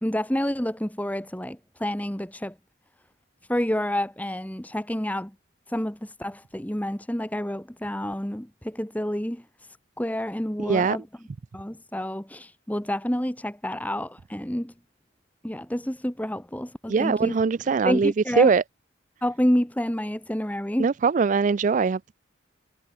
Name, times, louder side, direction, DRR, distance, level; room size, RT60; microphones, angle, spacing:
voice 1, 0.0-2.5 3.5-5.3 5.7-9.4 10.0-11.0 11.5-14.7 15.4-17.4 17.8-18.5 19.2-20.9, equal, 10° left, 1.4 m, -28 dB
voice 2, 10.6-11.0 16.9-18.6 20.8-22.1, right 5 dB, 40° right, 0.3 m, -22 dB
head